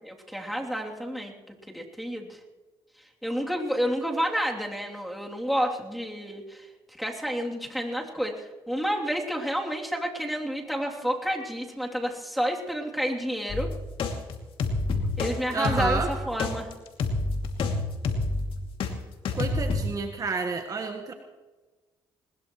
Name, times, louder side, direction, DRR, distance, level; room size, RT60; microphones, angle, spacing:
voice 1, 0.0-1.3 1.7-2.4 3.2-6.7 7.0-13.7 15.2-16.0 16.3-16.7, equal, ahead, -1 dB, 3.1 m, -30 dB
sound 1, 13.5-18.9 19.2-19.8, left 3 dB, 70° left, 2.6 m, -28 dB
voice 2, 15.5-16.1 19.3-21.1, right 4 dB, 40° right, 5 dB, 1.5 m, -30 dB
20.5 x 20.5 x 3.2 m, 1.2 s
cardioid pair, 85°, 10 cm